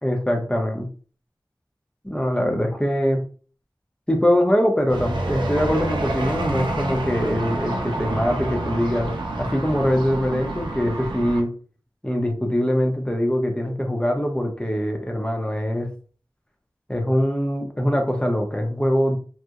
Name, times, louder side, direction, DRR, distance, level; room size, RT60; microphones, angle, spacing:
voice 1, 0.0-0.9 2.0-3.2 4.1-9.1 9.4-11.5 12.0-15.9 16.9-19.2, equal, 10° left, 2 dB, 0.6 m, -23 dB
sound 1, 4.9-11.4, right 2 dB, 80° right, 0.5 m, -28 dB
2.8 x 2.0 x 2.3 m, 0.41 s
wide cardioid pair, 40°, 8 cm